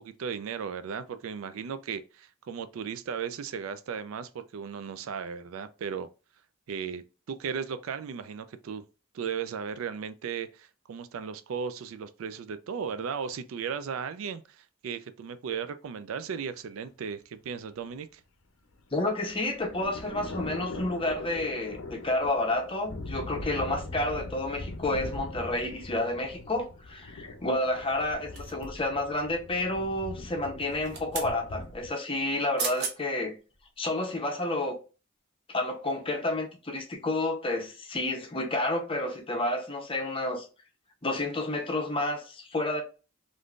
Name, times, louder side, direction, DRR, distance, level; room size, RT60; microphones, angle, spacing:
voice 1, 0.0-6.1 6.7-7.0 7.3-8.8 9.1-18.2, right 6 dB, 75° right, 0.4 m, -36 dB
sound 1, 18.8-31.9, left 2 dB, 70° left, 0.6 m, -41 dB
voice 2, 18.9-33.3 33.8-34.8 35.5-40.5 41.0-42.8, left 2 dB, 25° left, 0.6 m, -30 dB
sound 2, 28.3-28.9 30.6-31.3 32.3-32.4 32.6-33.0 33.5-33.6, right 5 dB, 50° right, 0.8 m, -35 dB
3.5 x 2.5 x 2.4 m
head